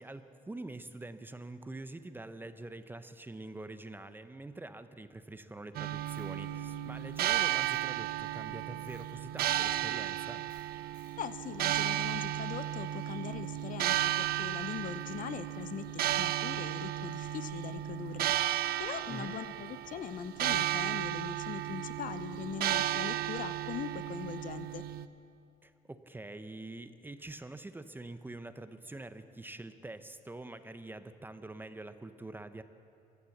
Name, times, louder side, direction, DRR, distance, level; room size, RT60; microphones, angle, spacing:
voice 1, 0.0-10.4 19.1-19.4 25.6-32.6, right 2 dB, 10° right, 11 dB, 0.7 m, -45 dB
sound 1, 5.7-25.1, right 13 dB, 65° right, 0.6 m, -34 dB
Tools, 6.1-6.3 7.2-7.3 7.6-7.9 8.8-9.0 9.4-9.6 10.5-10.6 10.9-11.1, left 7 dB, 80° left, 3.5 m, -63 dB
voice 2, 11.2-18.3 18.8-24.8, left 9 dB, 55° left, 13 dB, 0.7 m, -41 dB
16.0 x 11.5 x 7.2 m, 2.5 s
cardioid pair, 110°, 17 cm